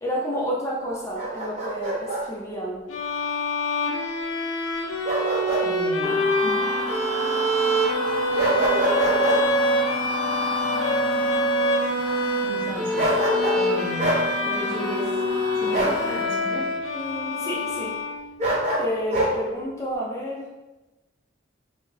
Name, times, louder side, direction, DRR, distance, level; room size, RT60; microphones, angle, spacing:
voice 1, 0.0-2.8 16.9-17.9 18.8-20.5, equal, 15° left, -4 dB, 0.4 m, -30 dB
Bark, 1.2-2.2 5.0-5.7 6.0-6.2 8.3-9.4 13.0-13.6 14.0-14.2 15.7-16.0 18.4-19.3, right 1 dB, 35° right, 0.7 m, -24 dB
sound 1, 2.9-18.6, left 1 dB, 85° left, 0.5 m, -26 dB
voice 2, 5.6-6.6 12.4-13.1 13.5-15.2 15.6-16.7, left 1 dB, 75° right, -4 dB, 0.9 m, -34 dB
sound 2, 6.0-16.2, right 1 dB, 5° right, 1.0 m, -30 dB
2.6 x 2.2 x 3.1 m, 1.1 s
head